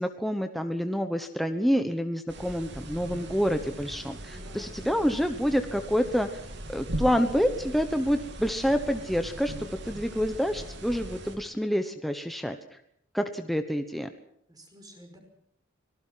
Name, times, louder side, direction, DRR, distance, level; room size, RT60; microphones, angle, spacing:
voice 1, 0.0-6.3 6.7-12.6 13.1-14.1, equal, ahead, 7 dB, 1.1 m, -27 dB
sound 1, 2.3-11.4, right 1 dB, 60° right, 3.3 m, -40 dB
voice 2, 4.3-4.8 14.5-15.2, equal, 20° right, 4 dB, 5.4 m, -51 dB
24.5 x 18.5 x 5.8 m, 0.71 s
head